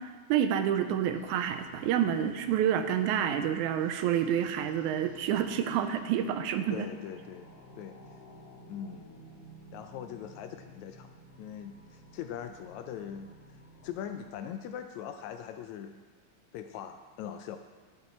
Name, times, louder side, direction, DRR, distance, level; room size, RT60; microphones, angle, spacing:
voice 1, 0.0-6.9, right 9 dB, 80° right, 9 dB, 2.0 m, -28 dB
sound 1, 1.1-15.2, equal, 60° left, 2.0 m, -53 dB
voice 2, 6.7-8.0 8.7-9.2 9.7-11.1 11.4-16.0 16.5-17.6, left 9 dB, 80° left, 7 dB, 1.7 m, -41 dB
11.0 x 8.7 x 4.2 m, 1.4 s
omnidirectional pair, 3.5 m